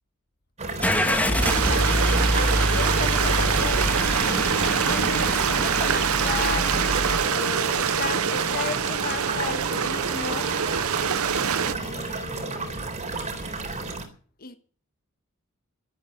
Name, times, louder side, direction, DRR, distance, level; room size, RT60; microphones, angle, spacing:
sound 1, 0.6-14.0, right 3 dB, 35° right, 3.9 m, -32 dB
Car / Engine starting, 0.8-7.2, equal, 5° left, 2.0 m, -26 dB
voice 1, 1.1-3.8 4.2-6.7 7.3-10.5 11.6-12.7 14.4-14.6, left 4 dB, 45° left, 9 dB, 1.4 m, -35 dB
Stream, 1.4-11.7, right 7 dB, 75° right, 0.8 m, -25 dB
13.0 x 12.0 x 7.9 m, 0.43 s
head